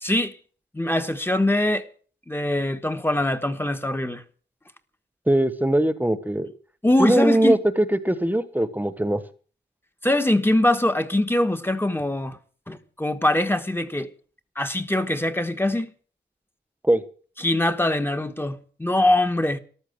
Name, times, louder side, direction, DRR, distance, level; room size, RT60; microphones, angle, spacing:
voice 1, 0.0-0.4 0.7-1.9 2.3-4.2 6.8-7.6 10.0-12.4 12.7-14.1 14.6-15.9 17.4-19.6, left 1 dB, 10° left, 1.2 m, -23 dB
voice 2, 5.3-6.5 7.0-9.2 16.8-17.0, right 1 dB, 10° right, 1.2 m, -21 dB
14.0 x 13.5 x 7.8 m
wide cardioid pair, 135°, 19 cm